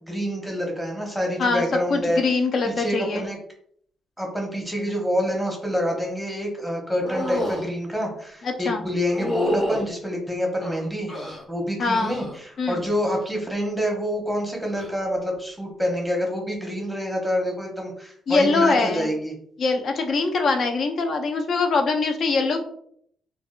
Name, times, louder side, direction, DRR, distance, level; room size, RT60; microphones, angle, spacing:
voice 1, 0.0-2.2 2.6-3.4 4.2-11.1 11.5-19.3, equal, ahead, 0 dB, 0.8 m, -27 dB
voice 2, 1.9-3.3 8.4-8.9 11.8-12.2 12.6-12.8 18.3-19.1 19.6-22.6, left 4 dB, 55° left, 4 dB, 0.5 m, -23 dB
sound 1, 7.0-7.7 9.1-9.9 10.6-11.4 11.9-12.4 12.7-13.2 14.7-14.9, equal, 30° left, 0.9 m, -29 dB
3.4 x 2.2 x 2.3 m, 0.65 s
cardioid pair, 115°, 0 cm